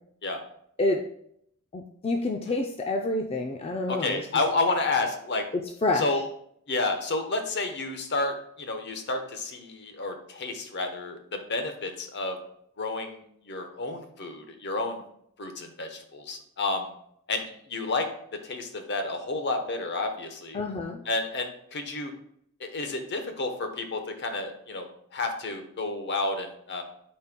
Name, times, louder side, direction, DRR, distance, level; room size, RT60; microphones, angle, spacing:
voice 1, 1.7-4.2 5.8-6.2 20.5-21.0, left 2 dB, 30° left, 2 dB, 0.4 m, -28 dB
voice 2, 3.9-5.5 5.9-6.2 6.7-12.4 12.8-15.0 15.4-16.9 17.3-20.6 21.0-22.1 22.6-24.9 25.1-26.8, left 3 dB, 55° left, 6 dB, 1.0 m, -30 dB
12.0 x 4.3 x 2.2 m, 0.70 s
head